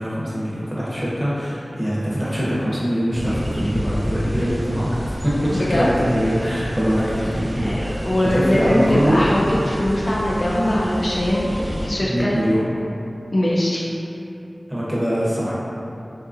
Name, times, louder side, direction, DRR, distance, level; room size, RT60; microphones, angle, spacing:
voice 1, 0.0-5.0 5.2-8.0 8.3-9.2 12.0-12.7 14.7-15.5, equal, 10° right, -8 dB, 0.7 m, -23 dB
sound 1, 3.1-11.9, equal, 55° right, 0.4 m, -29 dB
voice 2, 5.5-5.9 7.6-12.3 13.3-13.9, left 1 dB, 45° left, -5 dB, 0.3 m, -21 dB
2.8 x 2.4 x 2.5 m, 2.8 s
wide cardioid pair, 55°, 0 cm